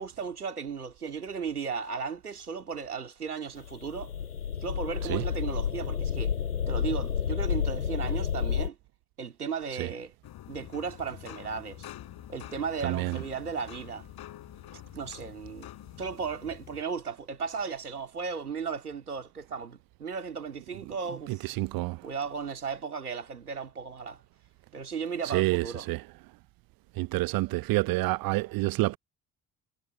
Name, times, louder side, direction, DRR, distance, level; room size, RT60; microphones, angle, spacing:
voice 1, 0.0-4.1 4.6-6.3 6.7-8.8 9.2-10.1 10.5-11.9 12.3-14.1 14.9-15.7 16.0-21.5 22.0-24.2 24.7-25.9, right 6 dB, 90° right, 2.3 m, -35 dB
Space Atmosphere Remastered Compilation, 3.6-8.7, left 8 dB, 85° left, 3.8 m, -30 dB
sound 1, 10.2-16.8, left 13 dB, 55° left, 4.5 m, -47 dB
voice 2, 12.8-13.2 21.4-22.0 25.2-26.0 27.0-29.0, right 21 dB, 55° right, 0.6 m, -28 dB
figure-of-eight pair, 50°, 44 cm